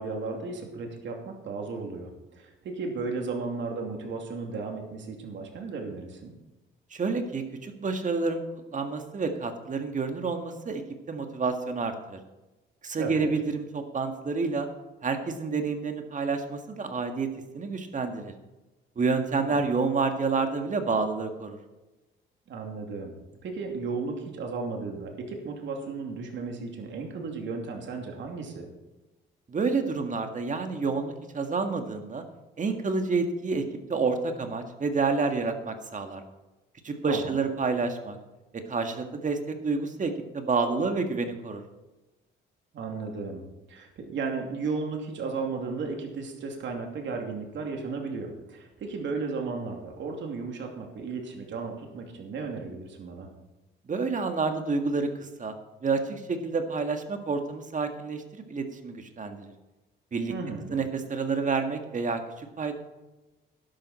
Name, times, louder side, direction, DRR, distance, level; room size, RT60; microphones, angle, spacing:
voice 1, 0.0-6.3 13.0-13.3 19.4-19.6 22.5-23.1 23.4-28.7 37.1-37.4 42.7-43.4 43.7-53.3 60.3-60.8, right 4 dB, 70° right, 2 dB, 2.8 m, -34 dB
voice 2, 6.9-8.4 8.7-10.8 11.1-12.2 12.8-14.7 15.0-17.3 17.5-18.3 18.9-21.6 29.5-32.2 32.6-33.6 33.9-36.2 36.8-38.2 38.7-41.6 53.9-55.5 55.8-59.5 60.1-60.3 60.7-62.7, right 4 dB, 40° right, 6 dB, 1.8 m, -29 dB
12.0 x 11.0 x 4.3 m, 1.1 s
cardioid pair, 90°, 20 cm